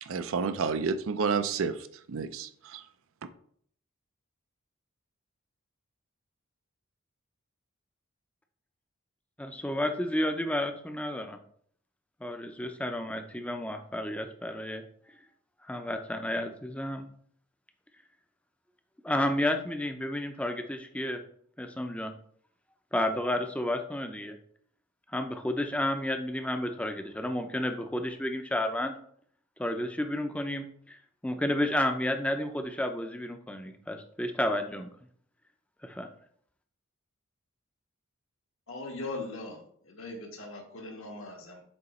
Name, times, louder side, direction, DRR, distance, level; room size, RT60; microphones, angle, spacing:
voice 1, 0.0-2.8, right 5 dB, 75° right, 11 dB, 0.5 m, -30 dB
voice 2, 9.4-11.4 12.2-14.8 15.7-17.0 19.0-21.2 21.6-22.1 22.9-24.4 25.1-28.9 29.6-31.0 31.2-34.9 35.8-36.1, left 1 dB, 5° left, 6 dB, 0.5 m, -31 dB
voice 3, 38.7-39.6 39.9-41.6, left 2 dB, 70° left, 1 dB, 1.4 m, -40 dB
7.9 x 2.9 x 4.2 m, 0.62 s
head